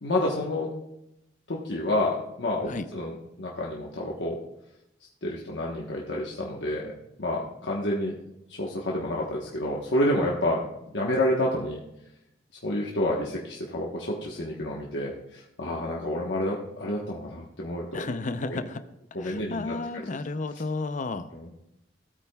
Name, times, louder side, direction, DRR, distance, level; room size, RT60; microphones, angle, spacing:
voice 1, 0.0-0.7 1.5-4.4 5.2-6.9 7.2-8.1 8.6-10.7 10.9-11.8 12.6-18.1 18.5-18.6 19.1-19.7 21.3-21.5, left 1 dB, 70° left, -3 dB, 1.2 m, -29 dB
voice 2, 17.9-18.8 19.2-21.3, left 3 dB, 45° left, 10 dB, 0.6 m, -32 dB
17.0 x 8.7 x 2.3 m, 0.86 s
head